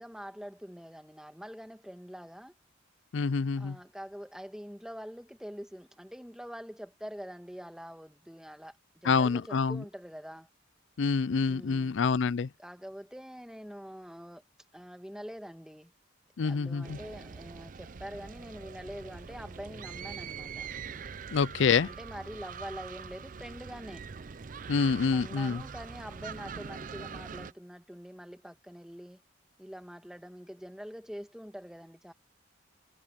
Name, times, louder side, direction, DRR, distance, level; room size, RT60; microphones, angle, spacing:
voice 1, 0.0-2.5 3.6-10.5 11.5-12.0 12.6-14.4 14.7-15.9 16.4-20.7 21.8-24.0 25.1-29.2 29.6-32.1, equal, 5° right, 1.7 m, -45 dB
voice 2, 3.1-3.8 9.0-9.8 11.0-12.5 16.4-17.0 21.3-21.9 24.7-25.6, left 5 dB, 70° left, 0.5 m, -27 dB
sound 1, 16.8-27.5, right 6 dB, 40° right, 0.5 m, -43 dB
head